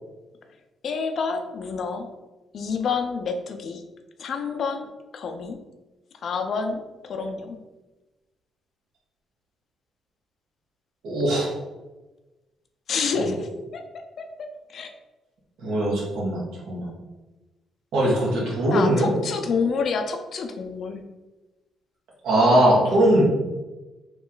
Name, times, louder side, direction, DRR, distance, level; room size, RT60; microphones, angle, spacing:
voice 1, 0.8-2.1 2.5-3.8 4.2-5.6 6.2-7.6 12.9-13.8 14.2-14.3 14.7-14.9 18.7-21.0, left 5 dB, 60° left, 5 dB, 0.5 m, -28 dB
voice 2, 11.0-11.5 13.1-13.2 15.6-16.9 17.9-19.2 22.2-23.2, right 1 dB, 85° right, -4 dB, 1.4 m, -20 dB
3.0 x 3.0 x 3.8 m, 1.1 s
cardioid pair, 90°, 0 cm